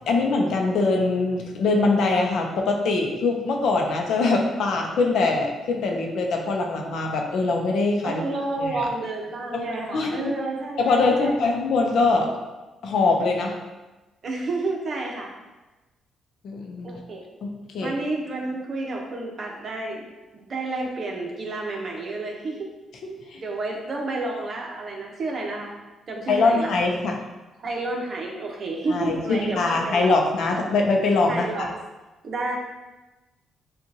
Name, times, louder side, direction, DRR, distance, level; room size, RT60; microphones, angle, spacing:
voice 1, 0.0-8.2 8.6-8.9 9.5-9.6 9.9-10.3 10.8-12.3 12.8-13.5 16.4-16.9 17.4-17.9 23.3-23.4 26.3-27.2 28.9-31.7, left 3 dB, 70° left, 1 dB, 0.8 m, -23 dB
voice 2, 8.0-11.4 14.2-15.3 16.8-17.2 17.8-20.1 20.3-22.6 23.4-25.7 26.1-26.7 27.6-30.2 31.3-31.7 32.2-32.6, right 2 dB, 50° right, -1 dB, 1.1 m, -30 dB
7.4 x 2.5 x 2.9 m, 1.1 s
cardioid pair, 90°, 0 cm